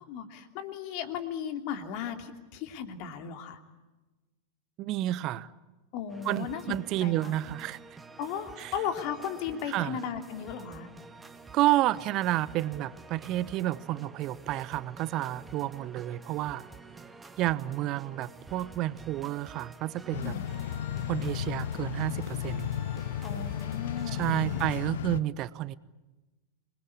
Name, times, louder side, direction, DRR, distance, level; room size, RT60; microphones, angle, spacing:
voice 1, 0.0-3.6 5.9-7.4 8.2-10.9 20.2-20.4 23.2-24.6, left 8 dB, 45° left, 7 dB, 2.9 m, -36 dB
voice 2, 4.8-5.5 6.2-7.8 8.6-8.7 9.7-10.0 11.5-16.7 17.4-20.3 21.1-22.7 24.1-25.7, right 15 dB, 35° right, 19 dB, 1.0 m, -30 dB
sound 1, 6.1-24.9, right 4 dB, 10° right, 1.6 m, -49 dB
sound 2, 20.1-25.2, left 10 dB, 60° left, 0.9 m, -34 dB
27.0 x 21.5 x 8.6 m, 1.1 s
figure-of-eight pair, 90°, 0 cm